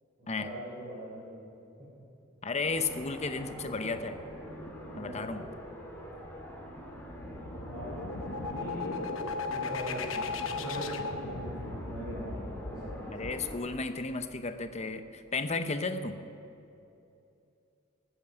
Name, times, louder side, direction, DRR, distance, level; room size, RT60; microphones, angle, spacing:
voice 1, 0.2-1.5 1.8-1.9 4.8-5.3 7.6-8.1 8.5-9.0 9.5-13.3, right 1 dB, 30° right, -8 dB, 4.2 m, -41 dB
voice 2, 2.4-4.2 5.0-5.4 13.1-16.2, left 3 dB, 35° left, 9 dB, 0.8 m, -33 dB
sound 1, 2.6-13.6, equal, 10° left, 2.6 m, -44 dB
sound 2, 7.0-14.6, left 4 dB, 80° left, 1.0 m, -37 dB
14.5 x 9.0 x 9.3 m, 2.8 s
head